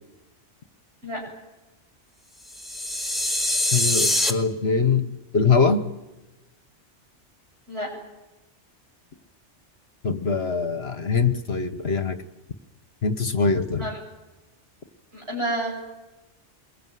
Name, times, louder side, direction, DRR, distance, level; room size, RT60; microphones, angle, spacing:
sound 1, 2.5-4.3, left 1 dB, ahead, 1.8 m, -24 dB
voice 1, 3.7-5.1 5.3-5.8 10.0-12.2 13.0-13.9, left 5 dB, 60° left, 9 dB, 1.5 m, -22 dB
voice 2, 15.1-15.7, right 1 dB, 60° right, -3 dB, 7.9 m, -29 dB
25.5 x 21.5 x 9.4 m, 1.0 s
omnidirectional pair, 1.2 m